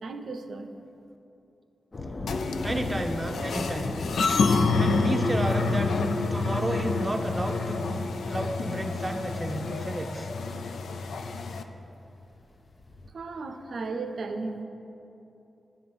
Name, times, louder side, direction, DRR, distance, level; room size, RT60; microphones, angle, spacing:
voice 1, 0.0-0.7 13.1-14.6, right 3 dB, 70° right, 6 dB, 0.5 m, -35 dB
sound 1, 1.9-10.7 11.8-11.9 12.2-13.1, left 2 dB, 45° left, 0.6 m, -39 dB
sound 2, 2.3-11.6, left 3 dB, 85° left, 0.4 m, -28 dB
voice 2, 2.6-3.9 4.8-5.9 6.3-10.3, right 1 dB, 20° right, 5 dB, 0.7 m, -32 dB
9.3 x 3.8 x 7.1 m, 2.9 s
cardioid pair, 60°, 0 cm